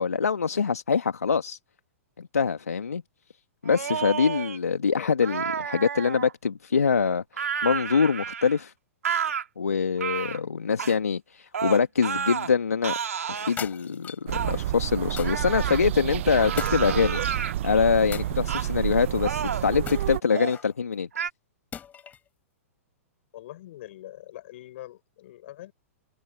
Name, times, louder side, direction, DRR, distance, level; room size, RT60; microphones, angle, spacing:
voice 1, 0.0-1.6 2.2-3.0 3.6-8.7 9.6-12.9 13.3-17.2 17.6-21.1, left 5 dB, 80° left, 1.7 m, -24 dB
sound 1, 3.7-4.6 5.2-6.3 7.3-8.6 9.0-9.4 10.0-10.4 10.8-11.0 11.5-12.5 12.8-13.6 14.3-14.6 15.2-15.8 16.4-17.5 18.5-18.7 19.2-19.7 20.2-20.6 21.1-21.3, right 7 dB, 75° right, 3.0 m, -31 dB
voice 2, 4.9-5.5 23.3-25.7, left 14 dB, 55° left, 6.0 m, -43 dB
sound 2, 13.6-14.3 15.2-15.6 16.6-17.4 18.1-18.9 19.9-20.7 21.7-22.3, left 8 dB, 20° left, 7.0 m, -40 dB
sound 3, 14.3-20.2, right 13 dB, 55° right, 0.7 m, -29 dB
figure-of-eight pair, 110°, 8 cm